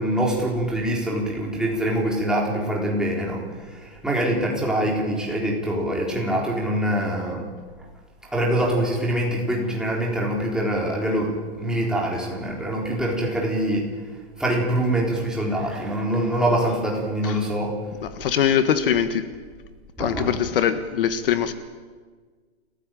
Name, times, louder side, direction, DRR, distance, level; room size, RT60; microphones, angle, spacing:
voice 1, 0.0-7.4 8.3-13.9 14.4-17.8 18.2-18.3 20.0-20.5, right 1 dB, ahead, -2 dB, 3.9 m, -24 dB
voice 2, 18.0-19.2 20.0-21.5, left 9 dB, 55° left, 10 dB, 1.7 m, -22 dB
29.5 x 16.0 x 9.2 m, 1.5 s
hypercardioid pair, 165°, 32 cm